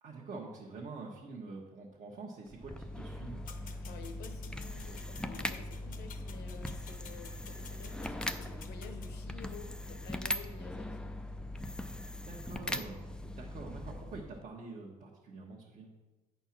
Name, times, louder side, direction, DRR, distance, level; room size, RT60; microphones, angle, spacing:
voice 1, 0.0-3.4 12.1-15.9, right 3 dB, 45° right, -2 dB, 1.2 m, -46 dB
sound 1, 2.5-14.4, left 1 dB, 5° left, 0.4 m, -40 dB
sound 2, 3.5-9.1, left 7 dB, 55° left, 0.9 m, -54 dB
voice 2, 3.8-11.1, left 5 dB, 80° left, 6 dB, 1.1 m, -51 dB
8.4 x 4.5 x 5.9 m, 1.2 s
cardioid pair, 110°, 17 cm